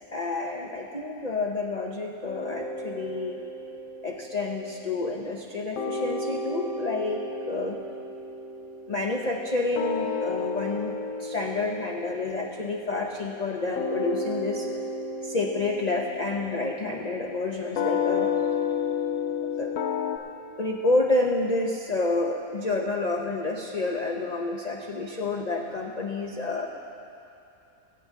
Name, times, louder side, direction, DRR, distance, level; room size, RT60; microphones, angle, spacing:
voice 1, 0.1-3.4 4.0-7.8 8.9-10.9 11.2-14.7 15.2-18.3 19.4-19.7 20.6-26.7, left 3 dB, 45° left, 0 dB, 0.5 m, -29 dB
sound 1, 2.2-5.5 5.8-20.2, left 4 dB, 75° left, 1.2 m, -32 dB
21.5 x 8.6 x 3.6 m, 2.7 s
omnidirectional pair, 1.6 m